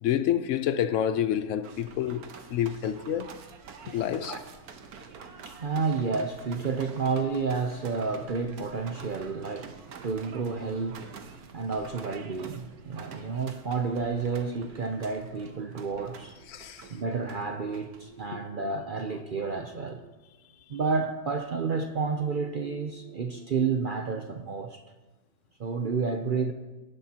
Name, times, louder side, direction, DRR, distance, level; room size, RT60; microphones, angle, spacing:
voice 1, 0.0-3.3 3.9-4.4 16.5-16.9 18.3-18.4, left 10 dB, 65° left, 0.8 m, -28 dB
sound 1, 1.6-18.3, right 6 dB, 90° right, 1.4 m, -48 dB
voice 2, 4.7-16.4 16.7-20.0 20.7-24.8 25.6-26.5, right 4 dB, 55° right, 0.6 m, -31 dB
18.0 x 10.5 x 2.8 m
omnidirectional pair, 1.5 m